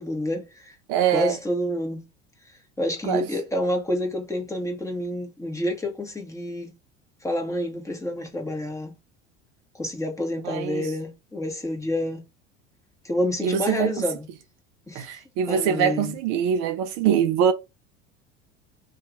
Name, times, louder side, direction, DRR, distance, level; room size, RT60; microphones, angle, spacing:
voice 1, 0.0-0.8 1.1-2.0 2.4-6.7 7.2-8.9 9.7-12.2 13.0-14.2 14.9-15.2 15.5-16.2, left 1 dB, 10° left, 1.2 m, -28 dB
voice 2, 0.9-1.4 3.0-3.3 10.4-10.9 13.4-13.9 14.9-17.5, right 8 dB, 60° right, 0.6 m, -23 dB
2.7 x 2.4 x 3.7 m
hypercardioid pair, 85°, 35 cm